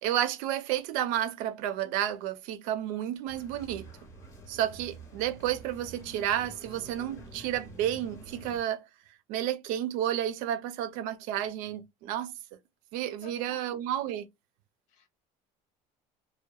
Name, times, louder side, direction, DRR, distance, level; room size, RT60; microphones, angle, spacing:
voice 1, 0.0-3.9 4.5-8.9 9.3-12.3 12.9-14.3, right 11 dB, 75° right, 0.4 m, -31 dB
sound 1, 3.3-8.6, right 2 dB, 20° left, 0.6 m, -48 dB
voice 2, 13.2-13.7 14.9-15.1, left 6 dB, 60° left, 0.7 m, -51 dB
2.7 x 2.1 x 2.2 m
cardioid pair, 170°, 14 cm